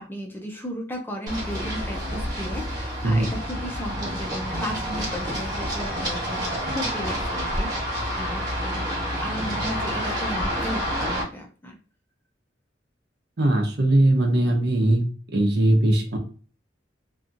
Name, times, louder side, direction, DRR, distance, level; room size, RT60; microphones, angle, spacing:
voice 1, 0.0-11.8, equal, 10° left, 1 dB, 0.5 m, -35 dB
Run, 1.3-11.2, equal, 20° right, 1.1 m, -28 dB
voice 2, 13.4-16.2, right 1 dB, 65° right, 3 dB, 0.7 m, -20 dB
2.7 x 2.3 x 2.6 m, 0.39 s
head